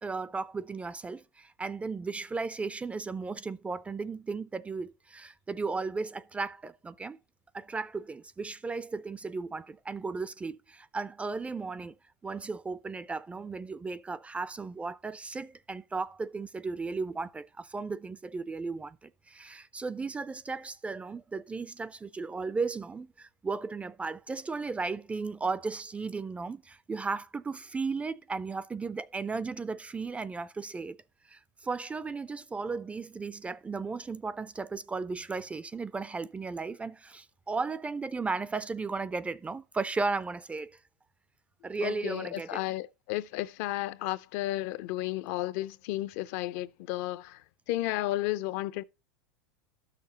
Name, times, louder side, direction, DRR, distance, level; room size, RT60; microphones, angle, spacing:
voice 1, 0.0-7.2 7.5-11.9 12.2-31.0 31.3-40.8 41.6-42.6, right 4 dB, 10° right, 0.3 m, -35 dB
voice 2, 41.8-48.8, left 16 dB, 60° left, 0.5 m, -33 dB
12.0 x 6.6 x 2.8 m
supercardioid pair, 120°, 10 cm